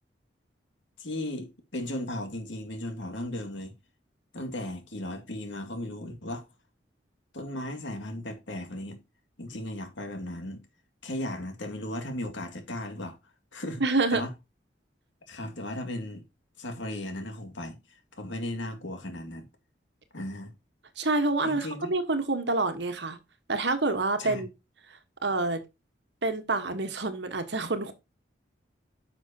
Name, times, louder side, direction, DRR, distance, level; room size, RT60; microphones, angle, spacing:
voice 1, 1.0-3.7 4.3-6.5 7.3-9.0 9.4-10.6 11.0-13.2 13.5-13.8 14.1-14.3 15.3-16.2 16.6-17.8 18.2-19.5 20.1-20.5 21.4-21.9 24.2-24.4, left 1 dB, 85° left, 2.1 m, -36 dB
voice 2, 13.8-14.2 21.0-23.2 23.5-24.5 25.2-25.6 26.2-27.9, right 3 dB, 70° right, 1.3 m, -27 dB
10.0 x 6.3 x 2.8 m
head